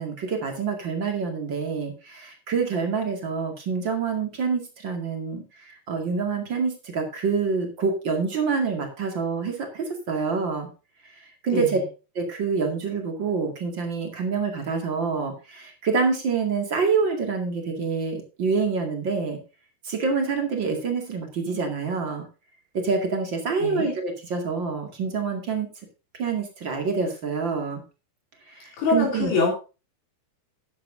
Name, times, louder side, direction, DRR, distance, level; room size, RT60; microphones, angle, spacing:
voice 1, 0.0-10.7 11.4-11.8 12.1-19.4 19.8-22.2 22.7-25.7 26.2-27.8 28.5-29.3, right 5 dB, 45° right, 2 dB, 1.5 m, -26 dB
voice 2, 11.5-11.9 23.6-24.0 28.8-29.5, left 3 dB, 65° left, -1 dB, 5.2 m, -24 dB
13.5 x 10.0 x 2.7 m, 0.31 s
omnidirectional pair, 5.6 m